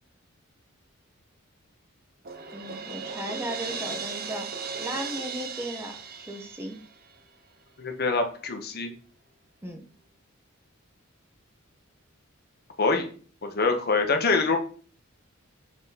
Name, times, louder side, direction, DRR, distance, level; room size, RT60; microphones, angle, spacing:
Crash cymbal, 2.3-7.2, right 5 dB, 45° right, 0.7 m, -36 dB
voice 1, 2.5-4.5 4.8-6.8 9.6-9.8, equal, 10° right, 3 dB, 0.8 m, -36 dB
voice 2, 7.8-8.9 12.8-13.1 13.4-14.6, left 3 dB, 45° left, 5 dB, 0.9 m, -25 dB
6.4 x 3.7 x 4.1 m, 0.42 s
head